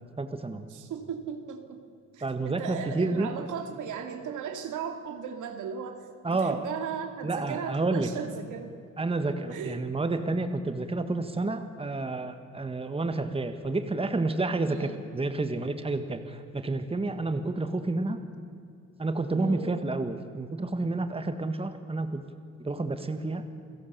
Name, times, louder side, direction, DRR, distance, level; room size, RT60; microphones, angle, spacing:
voice 1, 0.2-0.7 2.2-3.3 6.2-6.7 7.2-8.1 9.0-18.2 19.0-22.2 22.6-23.4, right 2 dB, 20° right, 8 dB, 1.7 m, -30 dB
voice 2, 0.7-1.8 2.1-8.7 9.5-9.8 14.6-15.0 19.3-19.8, right 7 dB, 80° right, 5 dB, 2.5 m, -37 dB
29.0 x 16.5 x 6.9 m, 2.5 s
cardioid pair, 90°, 30 cm